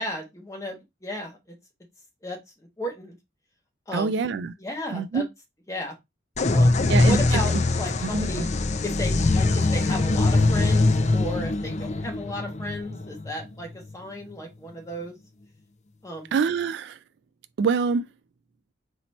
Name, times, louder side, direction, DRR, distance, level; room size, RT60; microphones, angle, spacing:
voice 1, 0.0-1.6 2.2-2.4 2.8-3.1 3.9-4.2 4.6-5.2 5.7-5.9 6.5-8.5 8.8-15.2 16.0-16.3, left 1 dB, 15° left, 1.3 m, -34 dB
voice 2, 3.9-4.5 4.9-5.3 6.9-7.4 8.0-8.5 16.3-17.0 17.6-18.1, right 5 dB, 60° right, 0.3 m, -25 dB
sound 1, 6.4-13.9, left 2 dB, 35° left, 0.5 m, -22 dB
4.2 x 2.7 x 4.2 m
head